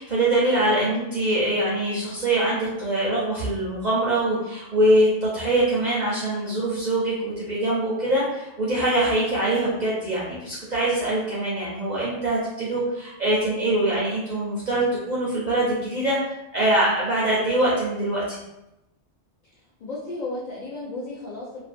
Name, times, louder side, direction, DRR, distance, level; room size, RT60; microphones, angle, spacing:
voice 1, 0.0-16.2 16.5-18.4, right 1 dB, 55° right, -6 dB, 0.5 m, -23 dB
voice 2, 19.5-21.6, left 2 dB, 55° left, -7 dB, 0.5 m, -34 dB
2.5 x 2.1 x 2.5 m, 0.92 s
omnidirectional pair, 1.2 m